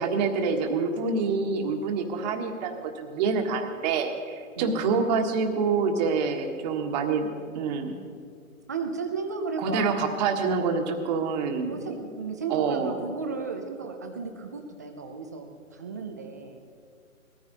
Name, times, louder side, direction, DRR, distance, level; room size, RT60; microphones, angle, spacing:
voice 1, 0.0-7.3 7.5-8.0 9.6-11.7 12.5-12.9, right 5 dB, 30° right, 4 dB, 1.5 m, -26 dB
voice 2, 8.7-10.2 11.7-16.6, right 4 dB, 15° right, 4 dB, 0.4 m, -34 dB
19.5 x 14.0 x 4.0 m, 2.2 s
hypercardioid pair, 135°, 42 cm